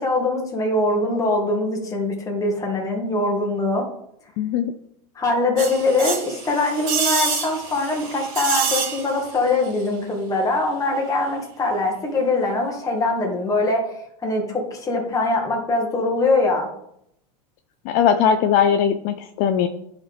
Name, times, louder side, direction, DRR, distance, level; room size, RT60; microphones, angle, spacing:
voice 1, 0.0-3.8 5.1-13.9 14.2-16.7, left 2 dB, 15° left, 1 dB, 1.6 m, -22 dB
voice 2, 4.4-4.7 17.9-19.7, left 8 dB, 45° left, 8 dB, 0.5 m, -19 dB
sound 1, 5.6-9.4 9.6-9.7, right 5 dB, 45° right, 2.2 m, -26 dB
10.5 x 4.0 x 3.4 m, 0.75 s
supercardioid pair, 130°, 20 cm